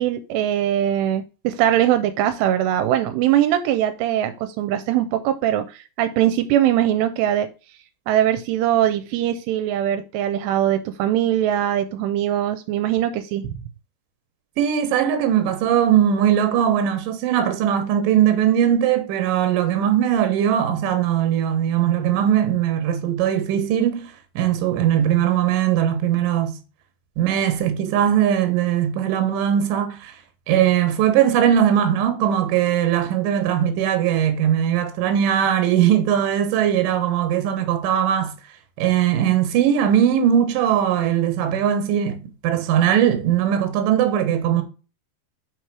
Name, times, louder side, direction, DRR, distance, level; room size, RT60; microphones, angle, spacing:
voice 1, 0.0-7.5 8.1-13.5, right 11 dB, 85° right, 2.6 m, -21 dB
voice 2, 14.6-26.6 27.2-30.1 30.5-38.3 38.8-44.6, right 10 dB, 65° right, 2.4 m, -20 dB
6.0 x 4.7 x 4.6 m
omnidirectional pair, 4.9 m